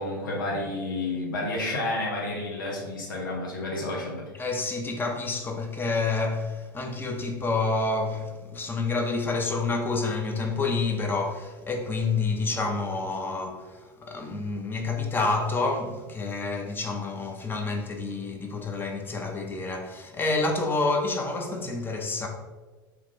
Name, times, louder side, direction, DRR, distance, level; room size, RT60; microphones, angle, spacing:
voice 1, 0.0-4.3, left 2 dB, 75° left, 0.8 m, -30 dB
voice 2, 4.4-22.3, left 3 dB, 20° left, 0.6 m, -28 dB
2.9 x 2.4 x 3.5 m
hypercardioid pair, 80°, 11 cm